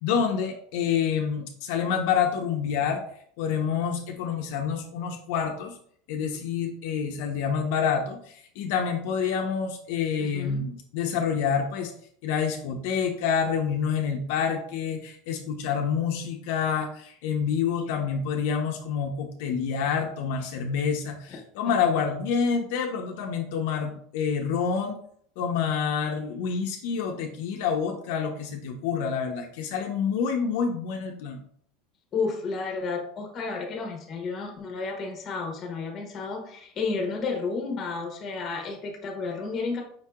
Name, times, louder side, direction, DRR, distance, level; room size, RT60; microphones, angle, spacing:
voice 1, 0.0-3.0 3.4-5.8 6.1-11.9 12.2-25.0 25.4-31.4, left 6 dB, 65° left, 2 dB, 0.6 m, -27 dB
voice 2, 10.2-10.7 21.3-21.4 21.6-22.0 32.1-39.8, left 4 dB, 25° left, 2 dB, 1.0 m, -32 dB
5.3 x 2.8 x 3.5 m, 0.63 s
supercardioid pair, 165°, 0 cm